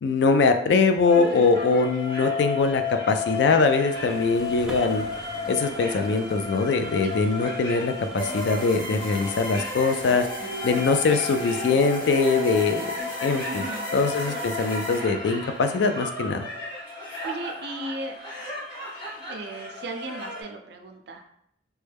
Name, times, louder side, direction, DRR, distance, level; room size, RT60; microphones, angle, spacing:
voice 1, 0.0-5.0 5.5-12.9 13.2-13.5 13.9-16.5, left 4 dB, 70° left, 8 dB, 0.3 m, -22 dB
sound 1, 1.0-20.4, left 4 dB, 25° left, 1.0 m, -34 dB
voice 2, 1.1-1.5 7.0-7.1 13.5-13.9 17.2-18.2 19.2-21.3, right 2 dB, 65° right, 4 dB, 0.4 m, -36 dB
sound 2, 3.6-10.6, equal, 5° right, 0.4 m, -45 dB
sound 3, 8.2-15.0, right 1 dB, 50° left, 1.0 m, -35 dB
3.1 x 2.2 x 3.3 m, 0.73 s
head